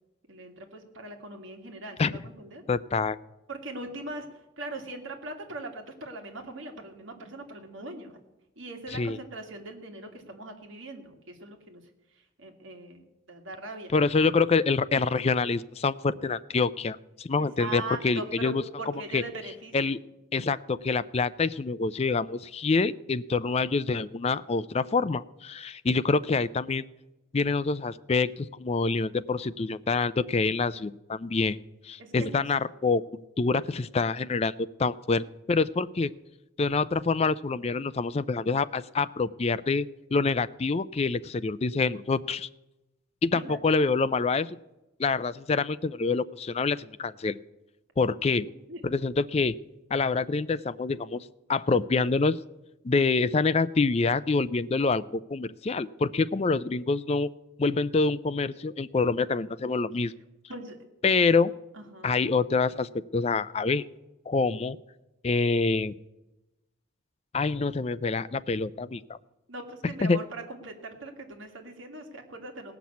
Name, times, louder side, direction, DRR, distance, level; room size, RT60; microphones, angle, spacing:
voice 1, 0.3-2.6 3.5-4.3 4.6-8.2 8.6-11.8 12.4-13.9 17.4-18.5 18.8-20.0 32.0-32.5 43.3-43.6 48.7-48.8 60.5-60.8 61.7-62.3 69.5-72.8, right 2 dB, 60° right, 3 dB, 2.1 m, -40 dB
voice 2, 2.7-3.2 8.9-9.2 13.9-18.6 19.1-19.2 19.7-20.0 20.3-26.9 27.3-31.6 31.8-33.0 33.4-36.1 36.6-42.5 43.2-44.6 45.0-47.4 48.0-48.5 48.8-49.6 49.9-52.4 52.8-57.3 57.6-60.1 61.0-61.5 62.0-63.9 64.3-64.8 65.2-65.9 67.3-69.2 70.0-70.2, left 4 dB, 30° left, 15 dB, 0.4 m, -26 dB
17.5 x 6.0 x 8.4 m, 0.98 s
head